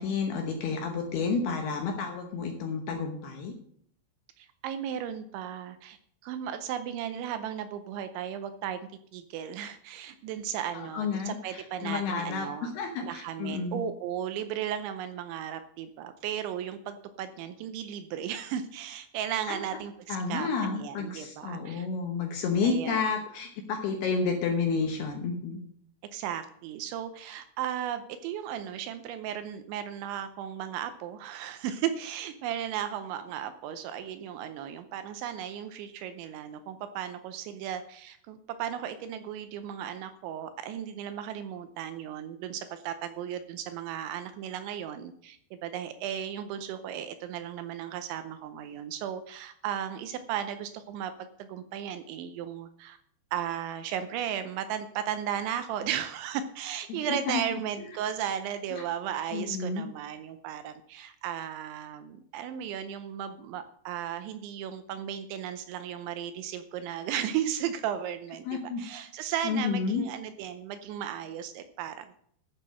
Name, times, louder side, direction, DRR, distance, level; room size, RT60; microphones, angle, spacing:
voice 1, 0.0-3.5 10.7-13.8 19.5-19.6 20.1-25.6 56.9-57.4 57.8-57.9 58.7-58.8 59.3-59.8 68.5-68.8 69.4-70.0, left 5 dB, 75° left, 3 dB, 2.5 m, -31 dB
voice 2, 4.4-8.8 9.1-12.7 13.0-21.9 22.6-23.0 26.1-53.0 53.3-72.1, right 9 dB, 80° right, 10 dB, 2.8 m, -35 dB
13.0 x 6.7 x 6.2 m, 0.65 s
omnidirectional pair, 5.7 m